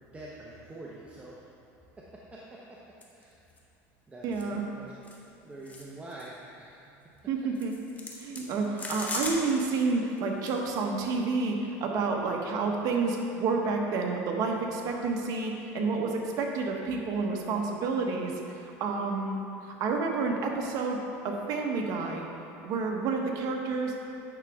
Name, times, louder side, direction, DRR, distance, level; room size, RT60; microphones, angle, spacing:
voice 1, 0.1-1.4 2.0-3.4 4.1-4.9 5.4-6.9, right 2 dB, 20° right, -5 dB, 0.9 m, -46 dB
sound 1, 3.0-3.2 3.6-3.7 4.3-4.4 5.0-5.2 5.7-5.8 6.1-6.3 7.6-9.9 10.2-10.5, left 2 dB, 20° left, 1.2 m, -38 dB
voice 2, 4.2-4.6 7.3-7.8 8.1-22.2 22.6-23.9, right 4 dB, 55° right, 1 dB, 1.1 m, -30 dB
9.1 x 6.2 x 3.6 m, 2.9 s
supercardioid pair, 110°, 7 cm